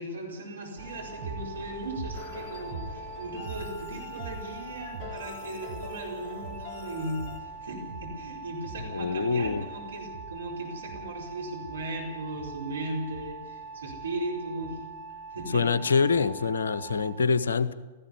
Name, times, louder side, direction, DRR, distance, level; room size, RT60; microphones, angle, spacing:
voice 1, 0.0-14.8 15.3-15.6, right 1 dB, 70° right, -1 dB, 4.5 m, -37 dB
sound 1, 0.8-17.1, right 4 dB, 35° right, 4.9 m, -41 dB
sound 2, 2.1-7.4, left 7 dB, 25° left, 2.6 m, -45 dB
voice 2, 8.8-9.6 15.5-17.7, left 5 dB, 70° left, 15 dB, 0.9 m, -25 dB
17.5 x 15.0 x 9.7 m, 1.3 s
figure-of-eight pair, 105°, 0 cm